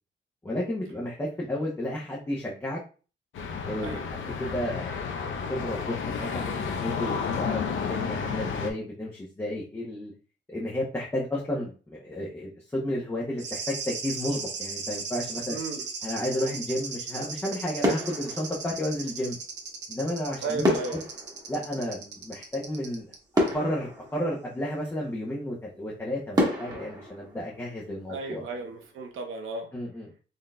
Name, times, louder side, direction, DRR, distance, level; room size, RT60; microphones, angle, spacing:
voice 1, 0.4-2.8 3.6-10.1 10.5-15.6 16.0-19.4 19.9-21.0 21.5-23.1 23.3-28.4 29.7-30.1, left 1 dB, 10° left, -5 dB, 0.6 m, -32 dB
sound 1, 3.3-8.7, left 6 dB, 75° left, 0.7 m, -31 dB
sound 2, 13.4-23.2 23.5-23.6, right 5 dB, 60° right, 0.7 m, -37 dB
voice 2, 15.5-15.9 20.4-21.0 28.1-29.7, right 3 dB, 85° right, 3 dB, 0.9 m, -34 dB
sound 3, 17.3-17.5 17.8-19.3 20.6-22.5 23.0-23.1 23.3-24.9 25.5-25.6 26.3-28.2 28.6-28.8, equal, 20° right, 1.1 m, -30 dB
4.0 x 3.8 x 2.2 m, 0.37 s
wide cardioid pair, 165°, 20 cm